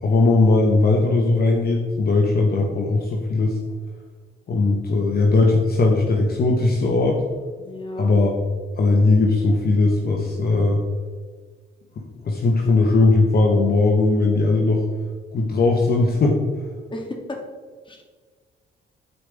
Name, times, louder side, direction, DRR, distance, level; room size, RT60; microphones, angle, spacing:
voice 1, 0.0-3.6 4.5-7.2 8.0-8.3 8.8-10.8 12.0-14.8 15.3-16.4, left 3 dB, 50° left, 1 dB, 1.2 m, -19 dB
voice 2, 7.6-8.2 16.9-17.4 17.9-18.0, left 1 dB, 25° left, 1 dB, 2.0 m, -33 dB
12.5 x 5.0 x 3.6 m, 1.6 s
cardioid pair, 90°, 20 cm